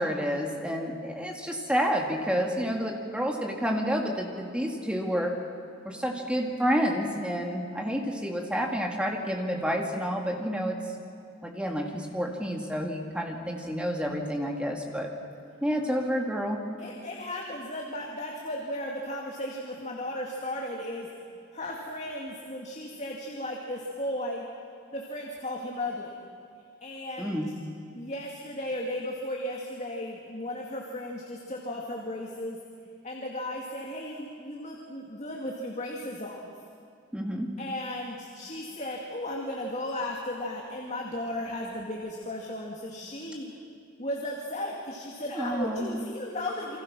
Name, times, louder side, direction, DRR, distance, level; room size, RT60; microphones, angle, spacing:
voice 1, 0.0-5.3 5.9-10.8 11.4-15.1 15.6-16.6 27.2-27.5 37.1-37.5 45.3-45.9, equal, 5° right, 1 dB, 2.1 m, -29 dB
voice 2, 16.8-21.1 21.5-24.4 24.9-26.1 26.8-27.4 27.9-32.6 33.0-36.5 37.6-43.5 44.0-46.8, left 1 dB, 35° left, -1 dB, 2.3 m, -35 dB
29.0 x 24.5 x 6.2 m, 2.4 s
head